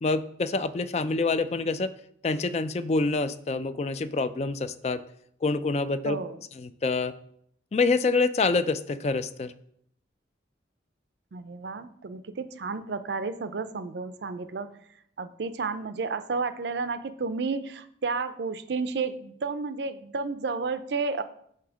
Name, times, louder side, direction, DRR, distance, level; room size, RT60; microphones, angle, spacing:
voice 1, 0.0-2.0 2.2-5.0 5.4-6.2 6.5-7.1 7.7-9.5, left 3 dB, 35° left, 13 dB, 0.3 m, -26 dB
voice 2, 6.0-6.4 11.3-14.7 15.2-21.2, right 4 dB, 70° right, 12 dB, 0.5 m, -31 dB
8.4 x 2.8 x 6.2 m, 0.68 s
head